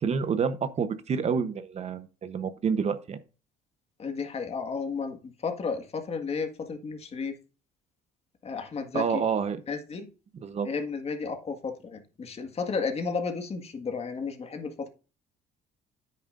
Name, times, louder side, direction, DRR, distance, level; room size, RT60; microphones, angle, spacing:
voice 1, 0.0-3.2 8.9-9.6 10.3-10.7, right 6 dB, 40° right, 0.9 m, -28 dB
voice 2, 4.0-7.4 8.4-9.2 9.7-10.1 10.6-14.9, left 5 dB, 35° left, 1.8 m, -33 dB
10.0 x 8.5 x 2.6 m
cardioid pair, 110°, 17 cm